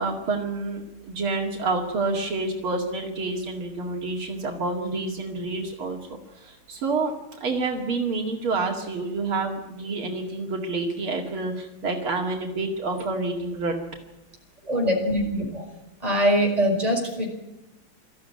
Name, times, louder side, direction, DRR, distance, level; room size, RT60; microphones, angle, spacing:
voice 1, 0.0-6.0 6.3-7.1 7.4-13.7, right 3 dB, 75° right, 1 dB, 3.1 m, -28 dB
voice 2, 14.6-15.6 16.0-17.3, equal, 15° right, 0 dB, 5.3 m, -23 dB
22.5 x 14.5 x 9.5 m, 0.98 s
omnidirectional pair, 2.3 m